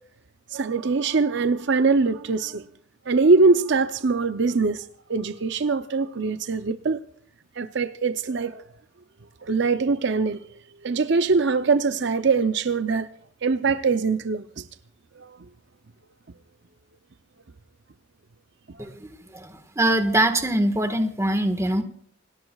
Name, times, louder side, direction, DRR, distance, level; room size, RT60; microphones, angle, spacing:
voice 1, 0.5-2.6 3.1-7.0 7.6-8.6 9.4-10.4 10.8-13.1 13.4-14.6 15.2-15.3, right 4 dB, 60° right, 0.6 m, -22 dB
voice 2, 18.8-21.8, right 1 dB, 15° right, 1.5 m, -23 dB
27.5 x 18.5 x 2.4 m
head